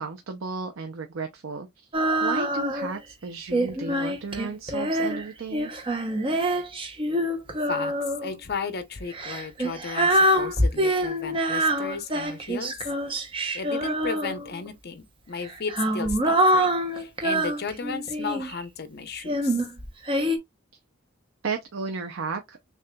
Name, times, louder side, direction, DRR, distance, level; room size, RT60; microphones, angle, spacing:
voice 1, 0.0-5.7 21.4-22.6, right 4 dB, 70° right, 0.6 m, -34 dB
Female singing, 1.9-3.0 3.5-8.3 9.1-14.7 15.4-18.6 19.2-20.4, right 1 dB, 25° right, 0.7 m, -25 dB
voice 2, 8.2-12.7 13.5-16.7 17.0-19.6, left 5 dB, 50° left, 0.7 m, -34 dB
6.5 x 2.4 x 2.2 m
head